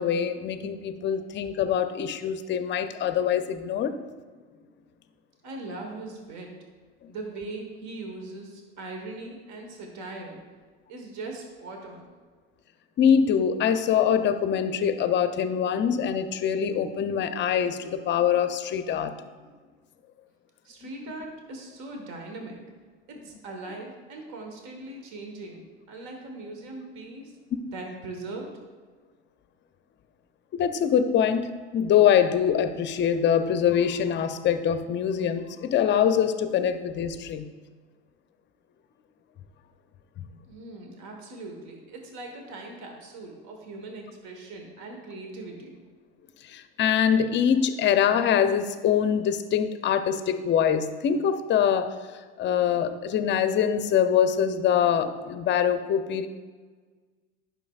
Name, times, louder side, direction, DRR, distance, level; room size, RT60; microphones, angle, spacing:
voice 1, 0.0-3.9 7.0-7.1 13.0-19.1 30.5-37.5 40.2-40.3 46.4-52.0 52.4-56.3, left 8 dB, 30° left, 10 dB, 0.6 m, -24 dB
voice 2, 5.4-6.5 7.1-10.4 10.9-12.1 20.6-22.6 23.1-27.3 27.7-28.5 40.5-45.8, right 2 dB, 55° right, 2 dB, 1.4 m, -40 dB
10.5 x 5.8 x 2.4 m, 1.5 s
hypercardioid pair, 80°, 35 cm